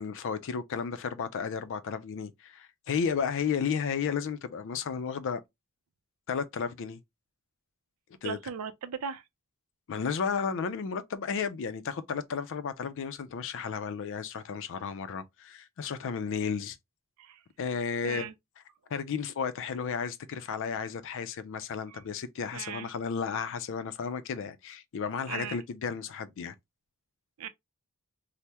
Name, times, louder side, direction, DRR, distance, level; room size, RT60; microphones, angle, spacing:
voice 1, 0.0-5.4 6.3-7.0 8.2-8.4 9.9-16.8 17.6-18.2 18.9-26.5, left 6 dB, 60° left, 0.4 m, -33 dB
voice 2, 8.2-9.2 17.2-17.4 18.0-18.3 21.9-22.0 22.5-22.9 25.3-25.6 27.4-27.5, right 7 dB, 80° right, 0.5 m, -38 dB
3.3 x 2.1 x 2.7 m
head